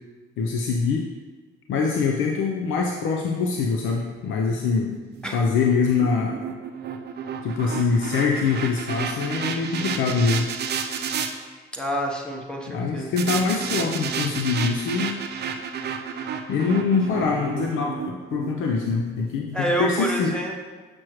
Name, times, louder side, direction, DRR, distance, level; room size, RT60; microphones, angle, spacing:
voice 1, 0.4-1.1 1.7-4.9 5.3-6.3 7.4-10.4 12.7-15.1 16.5-20.3, left 5 dB, 80° left, 1 dB, 0.6 m, -24 dB
sound 1, 5.1-11.3 13.2-19.4, right 7 dB, 55° right, 0.6 m, -31 dB
voice 2, 11.7-13.1 19.5-20.6, right 1 dB, 5° left, 0 dB, 1.0 m, -27 dB
6.2 x 6.0 x 3.1 m, 1.4 s
cardioid pair, 90°, 20 cm